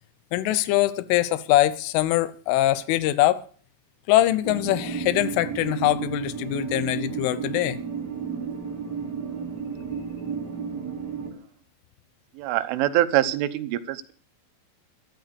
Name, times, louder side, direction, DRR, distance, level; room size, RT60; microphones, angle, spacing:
voice 1, 0.3-3.4 4.1-7.8, left 15 dB, 90° left, 3.3 m, -23 dB
sound 1, 4.4-11.3, right 6 dB, 25° right, 3.0 m, -32 dB
voice 2, 12.4-14.1, right 13 dB, 85° right, 3.5 m, -24 dB
13.0 x 13.0 x 6.8 m
omnidirectional pair, 5.5 m